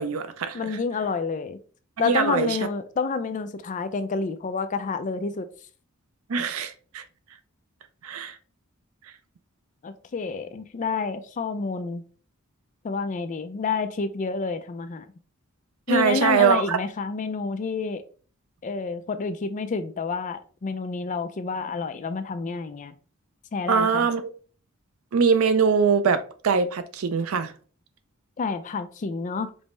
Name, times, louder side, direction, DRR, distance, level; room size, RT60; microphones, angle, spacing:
voice 1, 0.0-0.8 2.0-2.6 6.3-7.0 8.0-8.4 15.9-16.8 23.7-24.3 25.1-27.5, right 6 dB, 80° right, 0.5 m, -23 dB
voice 2, 0.5-1.6 2.0-5.5 9.8-12.0 12.8-15.1 15.9-18.0 18.6-22.9 23.5-24.1 28.4-29.5, left 4 dB, 35° left, 0.4 m, -29 dB
5.3 x 2.0 x 3.1 m
head